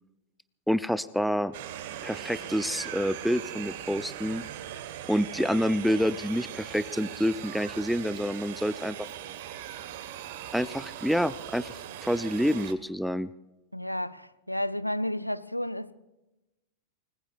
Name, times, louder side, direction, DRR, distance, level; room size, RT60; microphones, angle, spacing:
voice 1, 0.7-1.5 2.0-4.4 5.1-9.1 10.5-13.3, equal, ahead, 0.5 m, -28 dB
sound 1, 1.5-12.7, right 11 dB, 50° right, 1.3 m, -40 dB
voice 2, 13.7-15.9, left 1 dB, 90° left, 0.6 m, -32 dB
29.0 x 20.0 x 2.4 m
figure-of-eight pair, 90°, 0 cm